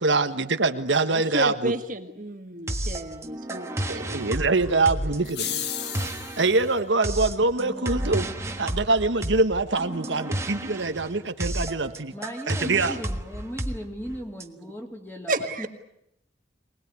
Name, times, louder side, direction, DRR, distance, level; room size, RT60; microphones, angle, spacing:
voice 1, 0.0-1.7 3.9-5.5 6.4-8.3 8.6-12.1 12.5-13.0, right 3 dB, 90° right, 7 dB, 1.5 m, -24 dB
voice 2, 1.1-4.0 4.3-4.4 15.3-15.7, right 1 dB, 45° right, 5 dB, 1.6 m, -31 dB
sound 1, 2.7-14.4, right 1 dB, 15° right, 1.4 m, -32 dB
sound 2, 5.2-6.6, left 9 dB, 65° left, 1.5 m, -32 dB
voice 3, 12.1-15.7, equal, 10° left, 1 dB, 3.5 m, -37 dB
24.5 x 19.5 x 9.6 m, 0.80 s
head